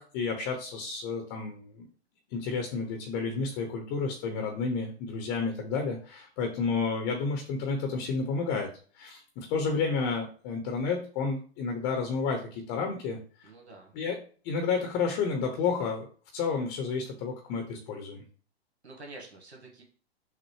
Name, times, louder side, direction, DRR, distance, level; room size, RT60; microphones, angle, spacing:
voice 1, 0.0-1.9 2.3-8.7 8.9-13.2 13.9-14.2 14.4-16.1 16.3-18.2, left 5 dB, 30° left, 4 dB, 0.7 m, -31 dB
voice 2, 13.4-13.9 18.8-19.8, right 2 dB, 85° right, 1 dB, 1.4 m, -47 dB
6.3 x 2.2 x 3.1 m, 0.41 s
figure-of-eight pair, 115°, 32 cm